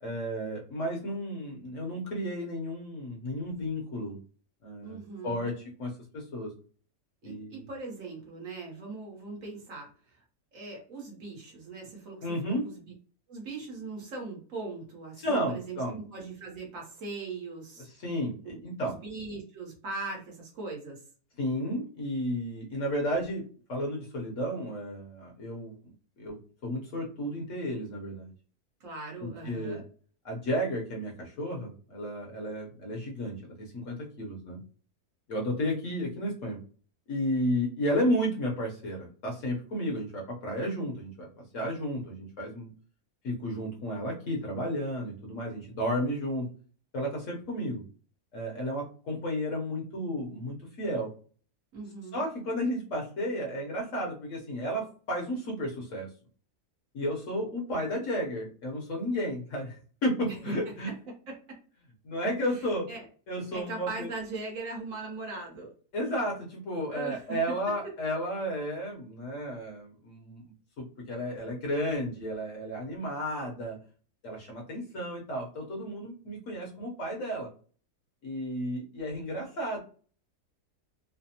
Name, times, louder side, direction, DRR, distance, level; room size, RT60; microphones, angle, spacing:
voice 1, 0.0-4.2 4.6-5.0 5.2-6.5 7.2-7.6 12.2-12.6 15.2-16.0 18.0-19.0 21.4-25.8 26.2-28.3 29.2-29.8 30.2-34.6 35.3-36.6 37.1-41.3 41.5-42.7 43.2-46.5 46.9-47.8 48.3-51.1 52.1-56.1 56.9-60.9 62.0-62.9 63.3-64.1 65.9-70.4 70.8-73.8 74.2-77.5 78.2-79.8, equal, 60° left, 0 dB, 1.0 m, -33 dB
voice 2, 4.8-5.5 7.2-10.2 10.5-12.3 12.6-12.9 13.3-17.9 18.4-21.0 28.8-29.8 51.7-52.2 60.3-61.6 62.5-63.0 63.5-65.7 66.9-67.9, right 3 dB, 60° right, -1 dB, 1.2 m, -40 dB
3.2 x 2.0 x 2.7 m, 0.41 s
omnidirectional pair, 1.7 m